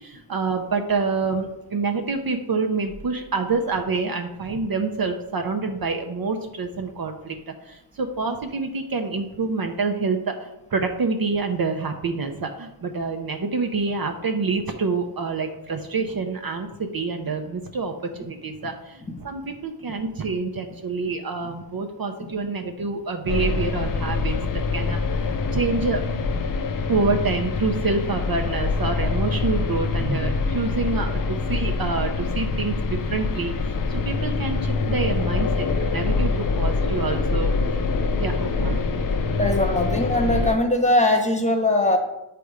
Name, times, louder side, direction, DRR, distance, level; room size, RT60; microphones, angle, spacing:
voice 1, 0.0-26.0 26.9-37.5 38.2-39.0, right 4 dB, 45° right, 5 dB, 0.7 m, -27 dB
sound 1, 23.3-40.6, left 4 dB, 45° left, 0.6 m, -25 dB
voice 2, 39.4-42.0, left 1 dB, 15° left, 4 dB, 1.0 m, -21 dB
8.0 x 3.4 x 4.9 m, 0.90 s
wide cardioid pair, 100°, 49 cm